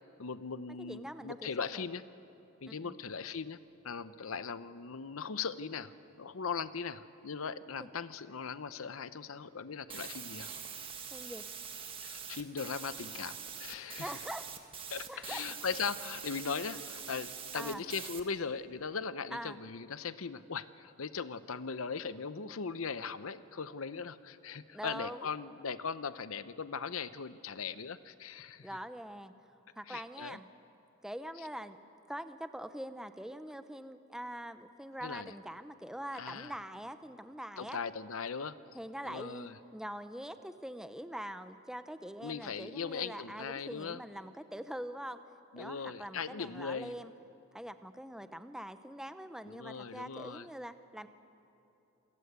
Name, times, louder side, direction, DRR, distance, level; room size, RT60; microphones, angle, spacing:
voice 1, 0.2-2.0 2.6-3.6 3.8-10.5 12.0-14.1 14.9-28.7 29.9-30.4 35.0-35.3 36.1-36.5 37.6-38.6 39.0-39.6 42.2-44.0 45.5-46.9 49.5-50.5, left 5 dB, 75° left, 14 dB, 0.8 m, -39 dB
voice 2, 0.8-1.8 2.7-2.9 7.8-7.9 11.1-11.5 14.0-14.5 15.1-15.4 16.7-16.8 17.5-17.8 19.3-19.6 24.7-25.3 28.6-29.3 29.8-30.5 31.0-31.8 32.1-37.8 38.7-45.2 45.6-47.1 47.5-51.1, equal, 5° right, 10 dB, 0.7 m, -43 dB
sound 1, 9.9-18.2, right 7 dB, 25° right, 1.6 m, -44 dB
27.5 x 20.5 x 8.2 m, 3.0 s
head